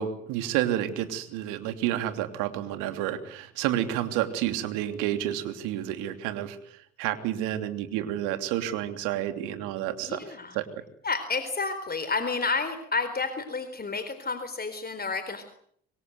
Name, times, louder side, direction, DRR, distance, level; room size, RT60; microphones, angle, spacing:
voice 1, 0.0-10.7, right 12 dB, 75° right, 8 dB, 3.1 m, -30 dB
voice 2, 10.1-10.6 11.0-15.4, left 4 dB, 30° left, 10 dB, 4.2 m, -30 dB
25.5 x 24.5 x 8.0 m, 0.66 s
hypercardioid pair, 55°, 31 cm